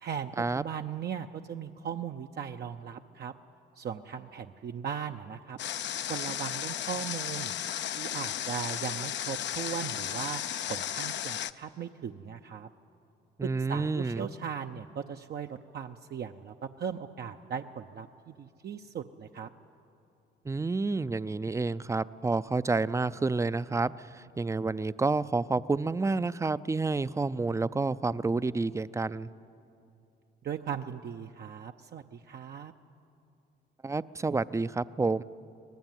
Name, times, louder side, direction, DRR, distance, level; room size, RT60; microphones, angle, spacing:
voice 1, 0.0-3.3 3.8-5.6 6.1-7.5 7.9-10.4 10.7-12.7 13.4-19.5 30.4-32.7, right 7 dB, 55° right, 5 dB, 0.7 m, -38 dB
Water, 5.6-11.5, left 10 dB, 65° left, 0.7 m, -34 dB
voice 2, 13.4-14.3 20.4-29.3 33.8-35.2, right 3 dB, 15° right, 16 dB, 0.5 m, -29 dB
24.0 x 19.0 x 9.2 m, 2.6 s
cardioid pair, 90°, 20 cm